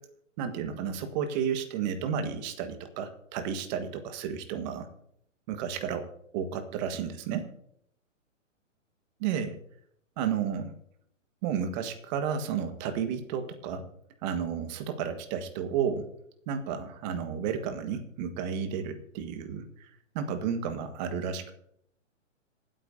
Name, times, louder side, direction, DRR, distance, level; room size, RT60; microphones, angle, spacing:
voice 1, 0.4-4.9 5.5-6.1 6.3-7.5 9.2-9.6 10.2-10.7 11.4-13.8 14.2-16.1 16.5-19.9 20.1-21.5, right 7 dB, 35° right, 7 dB, 1.6 m, -32 dB
26.5 x 8.9 x 2.8 m, 0.72 s
hypercardioid pair, 135°, 39 cm